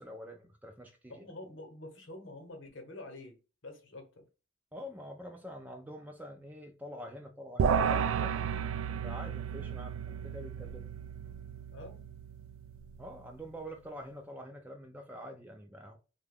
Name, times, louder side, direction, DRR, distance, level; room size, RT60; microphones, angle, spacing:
voice 1, 0.0-1.3 4.7-8.4 9.0-10.9 13.0-16.0, equal, 10° right, 0.3 m, -46 dB
voice 2, 1.1-3.4 3.6-4.2 11.7-12.0, left 2 dB, 65° left, 0.9 m, -47 dB
sound 1, 7.6-13.1, right 7 dB, 85° right, 0.3 m, -33 dB
2.9 x 2.2 x 3.4 m
head